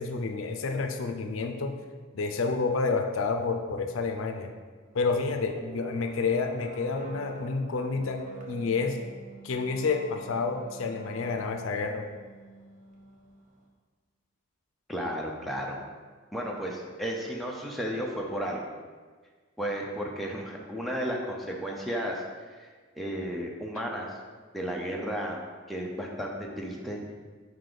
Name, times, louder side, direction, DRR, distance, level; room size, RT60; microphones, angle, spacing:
voice 1, 0.0-1.7 2.1-4.5 4.9-9.0 9.4-12.1, left 4 dB, 75° left, 5 dB, 0.5 m, -29 dB
sound 1, 4.9-13.6, right 2 dB, 40° right, 0.8 m, -47 dB
voice 2, 14.9-15.8 16.3-18.6 19.6-22.7 22.9-24.2 24.5-25.4 25.7-27.0, equal, ahead, -2 dB, 0.6 m, -33 dB
4.9 x 4.8 x 3.9 m, 1.5 s
head